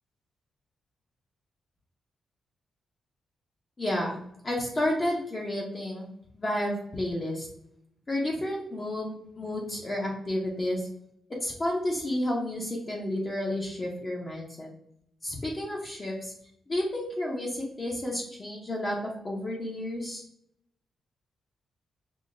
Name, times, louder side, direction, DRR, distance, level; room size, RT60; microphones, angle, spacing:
voice 1, 3.8-6.1 6.3-7.5 8.1-10.9 11.4-14.7 15.2-16.3 16.7-20.2, left 1 dB, 25° left, -2 dB, 0.6 m, -31 dB
5.5 x 2.0 x 2.5 m, 0.75 s
wide cardioid pair, 140°, 0 cm